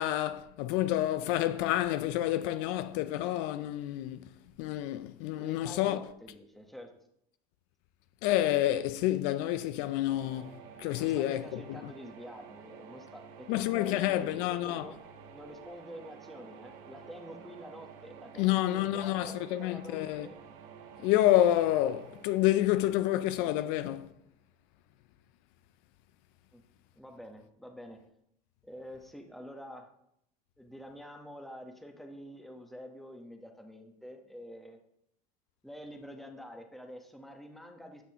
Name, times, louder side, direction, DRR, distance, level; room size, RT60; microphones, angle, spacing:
voice 1, 0.0-4.3 4.6-6.0 8.2-10.5 10.8-11.9 13.5-14.9 18.4-20.3 21.0-24.1, left 13 dB, 70° left, 0.5 m, -28 dB
voice 2, 5.4-6.9 11.0-15.0 15.3-20.3 26.5-26.6 27.0-28.0 28.6-29.9 30.6-34.8 35.6-38.0, equal, ahead, 1.1 m, -47 dB
sound 1, 10.1-23.9, right 7 dB, 75° right, 1.2 m, -51 dB
10.5 x 6.0 x 2.9 m
supercardioid pair, 115°, 20 cm